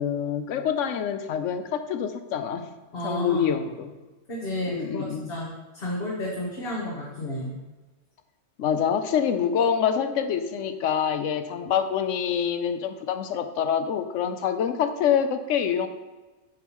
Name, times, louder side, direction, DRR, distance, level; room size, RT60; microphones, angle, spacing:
voice 1, 0.0-2.7 3.0-3.9 4.7-5.3 8.6-15.9, left 8 dB, 75° left, 9 dB, 0.9 m, -26 dB
voice 2, 2.9-3.6 4.3-5.5 5.7-7.5, left 1 dB, 50° left, -5 dB, 1.3 m, -32 dB
8.6 x 5.5 x 3.0 m, 1.2 s
omnidirectional pair, 1.3 m